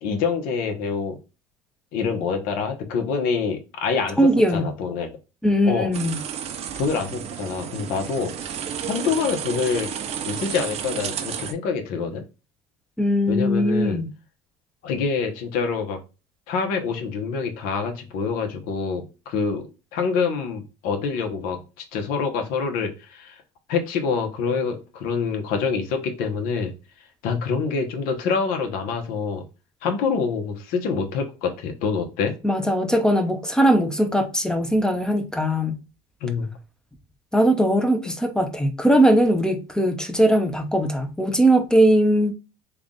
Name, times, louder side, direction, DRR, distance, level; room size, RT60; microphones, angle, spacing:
voice 1, 0.0-1.2 1.9-4.2 4.5-5.2 5.7-5.9 6.8-8.6 8.9-9.9 10.2-12.2 13.3-14.0 14.8-16.0 16.5-21.6 21.9-23.4 23.7-26.7 27.2-29.4 29.8-32.4 36.2-36.6, left 5 dB, 70° left, 1.1 m, -26 dB
voice 2, 4.2-4.7 5.4-6.2 13.0-14.1 32.4-35.8 37.3-42.3, right 1 dB, 5° left, 0.6 m, -20 dB
sound 1, 5.9-11.5, right 8 dB, 45° right, 0.5 m, -32 dB
3.5 x 2.4 x 3.7 m
cardioid pair, 115°, 15 cm